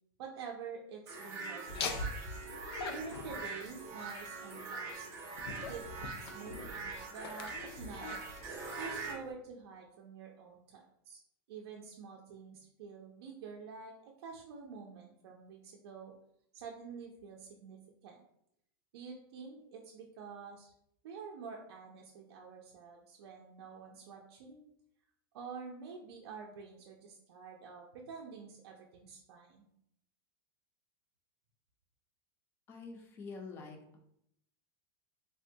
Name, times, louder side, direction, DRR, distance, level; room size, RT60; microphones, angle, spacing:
voice 1, 0.2-2.1 2.9-5.1 5.6-8.2 8.8-11.2 11.5-16.1 16.5-18.2 18.9-20.7 21.0-24.6 25.3-29.7, right 5 dB, 80° right, 0 dB, 0.5 m, -48 dB
sound 1, 1.1-9.1, right 4 dB, 20° right, 0.6 m, -43 dB
Laughter, 1.7-9.3, left 3 dB, 80° left, 0.5 m, -44 dB
voice 2, 32.7-34.0, left 4 dB, 20° left, 3 dB, 0.3 m, -47 dB
3.5 x 2.2 x 2.6 m, 0.75 s
supercardioid pair, 175°, 13 cm